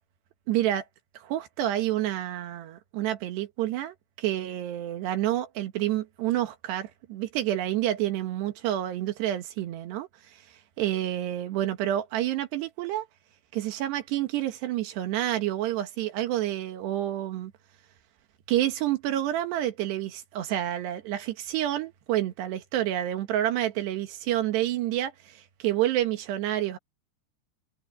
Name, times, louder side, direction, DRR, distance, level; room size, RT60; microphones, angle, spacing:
voice 1, 0.5-0.9 1.2-10.4 10.8-13.1 13.5-17.5 18.5-26.8, right 13 dB, 75° right, 3.5 m, -29 dB
omnidirectional pair, 5.1 m